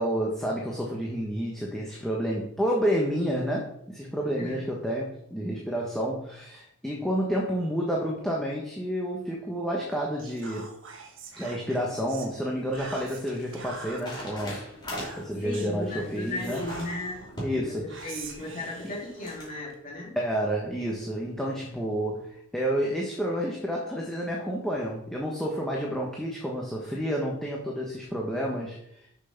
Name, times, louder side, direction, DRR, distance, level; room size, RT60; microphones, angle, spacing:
voice 1, 0.0-10.7 11.4-14.6 15.2-16.6 17.4-18.1 20.2-29.1, equal, ahead, -3 dB, 1.1 m, -30 dB
voice 2, 4.2-4.6 15.4-17.3 17.5-20.2, left 2 dB, 35° left, -4 dB, 3.2 m, -36 dB
Whispering, 10.2-12.3 12.7-14.3 15.0-15.8 16.4-17.3 17.9-19.8, right 4 dB, 60° right, 1.3 m, -44 dB
sound 1, 12.5-19.5, equal, 20° left, 2.9 m, -42 dB
6.9 x 6.0 x 5.8 m, 0.73 s
head